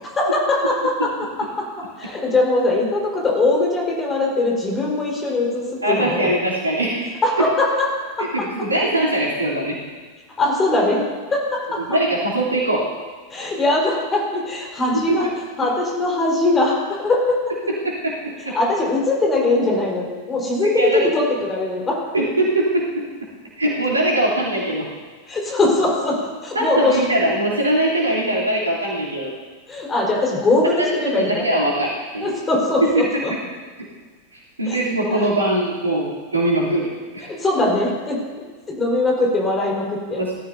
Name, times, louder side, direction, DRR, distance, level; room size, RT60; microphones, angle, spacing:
voice 1, 0.2-0.7 1.9-6.3 7.2-7.9 8.2-8.3 10.4-11.0 11.3-11.8 13.3-15.3 15.6-17.4 18.5-22.0 25.3-27.0 29.7-31.4 32.2-33.3 34.7-34.8 35.1-35.3 37.3-38.2 38.7-40.2, left 2 dB, 20° left, -3 dB, 4.5 m, -21 dB
voice 2, 5.8-7.0 8.2-9.8 11.9-12.9 15.1-15.2 17.7-18.6 20.7-21.1 22.1-23.0 23.6-24.9 26.5-29.3 30.8-32.3 32.8-33.2 33.8-33.9 34.3-37.3 40.1-40.3, right 1 dB, 80° right, -5 dB, 3.3 m, -22 dB
18.5 x 14.0 x 2.8 m, 1.4 s
figure-of-eight pair, 90°, 0 cm